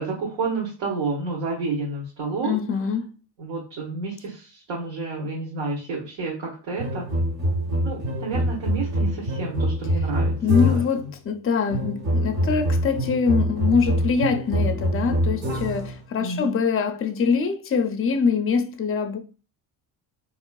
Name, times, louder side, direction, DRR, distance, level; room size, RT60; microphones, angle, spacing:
voice 1, 0.0-2.6 3.4-7.1 7.8-10.8 16.2-16.6, right 3 dB, 70° right, 1.4 m, -30 dB
voice 2, 2.4-3.1 10.4-19.2, left 5 dB, 30° left, 0.5 m, -24 dB
sound 1, 6.8-11.0 11.7-16.0, equal, 40° right, 1.0 m, -25 dB
3.8 x 3.0 x 2.2 m
supercardioid pair, 85°, 46 cm